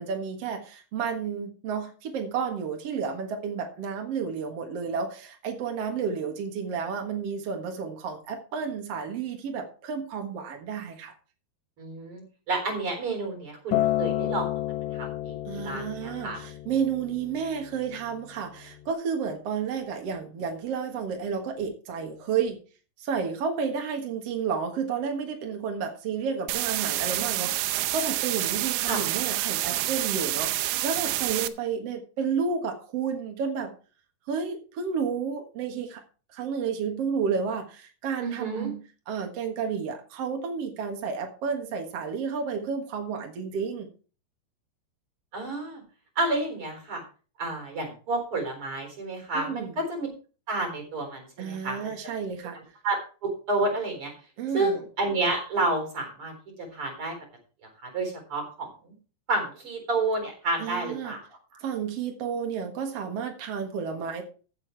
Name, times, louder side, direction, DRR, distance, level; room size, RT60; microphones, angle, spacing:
voice 1, 0.0-11.1 15.4-22.6 23.0-33.7 34.3-36.0 36.3-43.9 49.3-49.8 51.4-52.6 54.4-54.8 60.6-61.1 61.6-64.2, right 6 dB, 65° right, 4 dB, 1.5 m, -31 dB
voice 2, 11.8-14.5 14.9-15.3 15.6-16.4 28.9-29.0 38.2-38.7 45.3-45.8 46.2-47.0 47.4-50.1 50.5-51.9 52.8-54.1 54.5-56.3 56.7-57.1 57.8-58.9 59.3-61.2, right 2 dB, 30° right, 4 dB, 4.4 m, -30 dB
Acoustic guitar, 13.7-18.0 18.8-18.9, left 15 dB, 80° left, 2.8 m, -30 dB
sound 1, 26.5-31.5, right 15 dB, 85° right, 2.9 m, -28 dB
15.0 x 7.0 x 4.5 m, 0.37 s
omnidirectional pair, 5.1 m